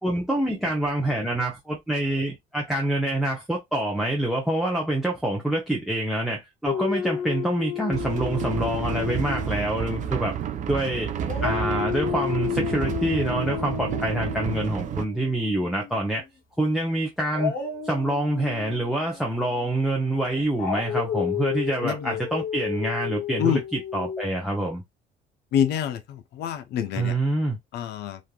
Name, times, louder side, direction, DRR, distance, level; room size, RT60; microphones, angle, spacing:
voice 1, 0.0-10.3 10.7-11.1 11.4-16.2 16.6-17.5 17.8-24.8 26.9-27.6, right 1 dB, ahead, 0.7 m, -26 dB
Dog, 6.7-10.8 11.2-16.2 17.3-24.3, left 9 dB, 55° left, 1.0 m, -32 dB
sound 1, 7.9-15.0, right 9 dB, 50° right, 0.4 m, -31 dB
voice 2, 21.8-22.2 23.4-23.6 25.5-27.2 27.7-28.2, left 9 dB, 75° left, 0.6 m, -26 dB
3.1 x 2.5 x 2.2 m
cardioid pair, 110°, 17 cm